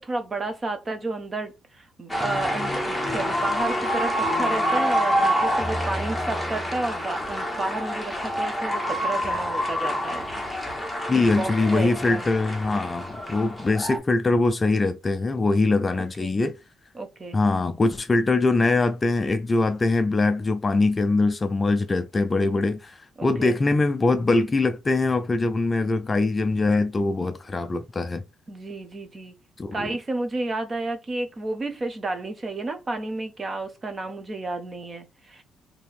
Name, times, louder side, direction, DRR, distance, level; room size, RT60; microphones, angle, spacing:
voice 1, 0.0-10.3 11.1-12.3 15.9-16.4 16.9-17.4 23.2-23.6 28.5-29.3 29.7-35.4, right 2 dB, 25° right, 0.8 m, -31 dB
sound 1, 2.1-14.0, equal, ahead, 1.1 m, -27 dB
voice 2, 11.1-16.6 17.3-28.2 29.6-29.9, left 3 dB, 20° left, 0.4 m, -22 dB
3.4 x 2.8 x 4.2 m
cardioid pair, 140°, 0 cm